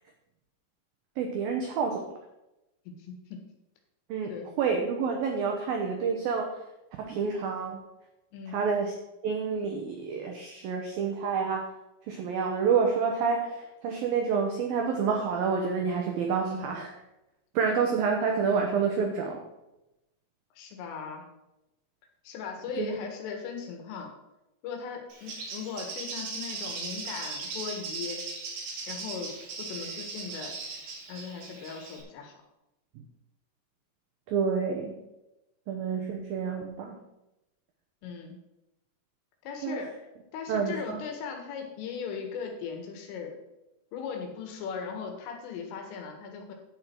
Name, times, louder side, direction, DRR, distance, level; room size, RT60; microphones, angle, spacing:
voice 1, 1.2-2.1 4.1-6.5 7.0-7.8 8.5-8.9 9.2-11.7 12.1-16.9 17.6-19.4 22.8-23.0 34.3-35.0 35.7-37.0 39.6-39.8 40.5-41.0, right 5 dB, 85° right, 2 dB, 2.0 m, -28 dB
voice 2, 2.9-3.5 4.3-4.5 8.3-8.6 16.4-16.8 20.6-21.2 22.3-24.1 24.6-28.2 28.9-30.5 31.1-32.4 38.0-38.4 39.4-40.1 40.3-43.3 43.9-46.5, left 6 dB, 90° left, 3 dB, 4.2 m, -38 dB
Bird, 25.1-32.0, right 4 dB, 55° right, 3.0 m, -38 dB
10.5 x 8.7 x 4.5 m, 0.93 s
omnidirectional pair, 5.6 m